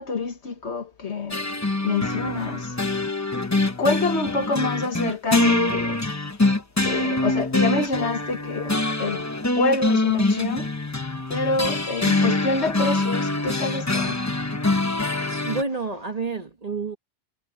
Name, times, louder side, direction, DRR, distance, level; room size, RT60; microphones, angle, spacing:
voice 1, 0.0-1.4 1.8-2.8 3.8-6.0 6.8-9.2 9.6-10.7 11.3-14.2, left 3 dB, 60° left, 1.7 m, -26 dB
sound 1, 1.3-15.6, left 2 dB, 15° left, 0.8 m, -24 dB
voice 2, 15.4-17.0, right 4 dB, 30° right, 1.3 m, -29 dB
omnidirectional pair, 1.3 m